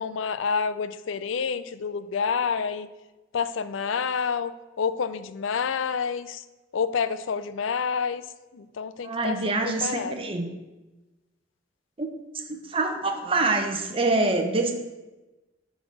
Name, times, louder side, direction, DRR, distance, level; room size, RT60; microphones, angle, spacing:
voice 1, 0.0-2.9 3.3-4.5 4.8-6.4 6.7-8.2 8.5-9.4 9.8-10.1, left 6 dB, 90° left, 13 dB, 0.5 m, -28 dB
voice 2, 9.0-10.5 12.0-12.1 12.3-14.7, right 3 dB, 30° right, 4 dB, 0.9 m, -25 dB
11.0 x 4.1 x 6.3 m, 1.1 s
head